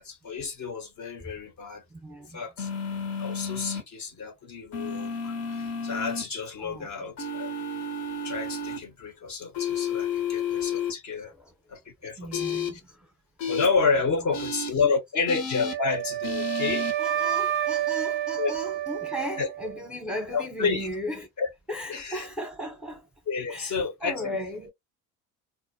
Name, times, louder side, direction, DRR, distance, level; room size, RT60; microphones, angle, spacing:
voice 1, 0.0-1.8 2.3-2.7 3.2-7.5 8.2-11.3 11.7-12.8 13.5-17.0 18.4-18.5 19.4-19.5 20.3-20.9 21.4-21.5 21.9-22.3 23.3-24.4, left 5 dB, 40° left, 0.8 m, -30 dB
voice 2, 1.9-2.4 6.6-7.1 11.3-11.5 12.2-13.1 17.0-21.3 21.7-23.1 23.5-23.7 24.0-24.7, equal, ahead, 0.8 m, -36 dB
sound 1, 2.6-3.8 4.7-6.2 7.2-8.8 9.5-10.9 12.3-12.7 13.4-13.6 14.3-14.7 15.3-15.7 16.2-16.9, left 5 dB, 70° left, 0.9 m, -31 dB
Wind instrument woodwind instrument, 15.7-19.8, right 11 dB, 30° right, 0.4 m, -29 dB
2.2 x 2.1 x 2.7 m
hypercardioid pair, 75°, 43 cm